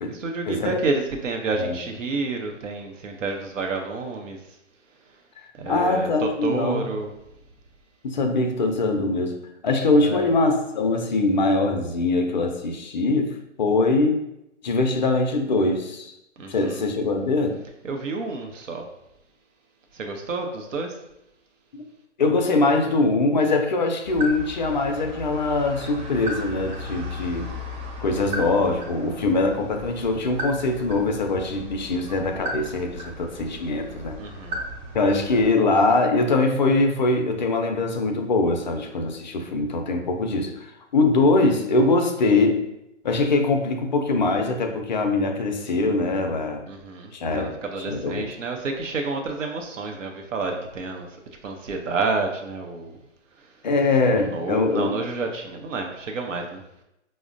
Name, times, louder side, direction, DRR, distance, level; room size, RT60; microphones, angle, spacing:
voice 1, 0.1-4.6 5.6-7.1 10.0-10.3 16.4-16.8 17.8-18.9 19.9-21.0 34.2-34.6 46.7-53.0 53.4-53.5 54.1-56.6, right 3 dB, 80° right, 3 dB, 0.7 m, -30 dB
voice 2, 5.7-6.9 8.0-9.4 9.6-14.2 14.6-16.1 16.5-17.6 21.7-21.8 22.2-27.5 28.0-34.2 34.9-42.6 43.0-46.6 47.1-47.6 47.8-48.2 53.6-55.0, left 3 dB, 40° left, 4 dB, 0.4 m, -22 dB
sound 1, 24.0-35.5, equal, 35° right, 1.0 m, -35 dB
5.0 x 2.0 x 2.5 m, 0.86 s
hypercardioid pair, 145°, 37 cm